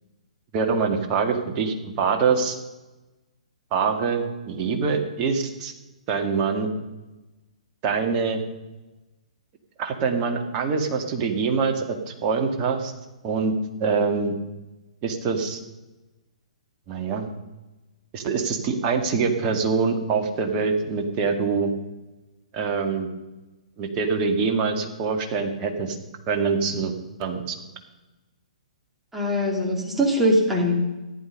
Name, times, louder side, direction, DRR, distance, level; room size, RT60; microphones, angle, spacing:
voice 1, 0.5-2.6 3.7-5.7 6.1-6.7 7.8-8.4 9.8-12.9 13.2-13.5 13.8-14.3 15.0-15.6 16.9-17.3 18.1-21.7 22.5-23.1 23.8-26.0 26.3-26.9 27.2-27.6, right 5 dB, 30° right, 4 dB, 1.9 m, -24 dB
voice 2, 29.1-30.9, equal, 5° right, -1 dB, 2.9 m, -22 dB
14.0 x 10.5 x 5.4 m, 1.1 s
figure-of-eight pair, 120°, 4 cm